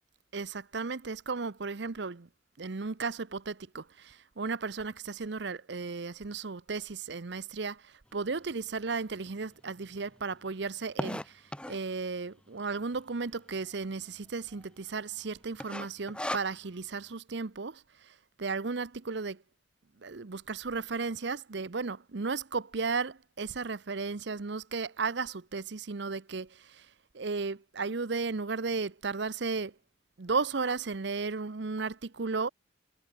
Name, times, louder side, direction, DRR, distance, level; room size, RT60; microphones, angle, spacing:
voice 1, 0.3-2.3 2.6-7.8 8.1-11.2 11.7-17.8 18.4-19.4 20.0-26.5 27.1-29.7 30.2-32.5, right 4 dB, 65° right, 0.8 m, -34 dB
sound 1, 8.5-8.6 9.2-9.3 9.4-9.5 9.8-11.9 12.6-13.0 13.3-13.4 13.6-13.7 14.3-14.6 14.9-15.2 15.6-16.9, left 1 dB, 5° left, 2.1 m, -37 dB
head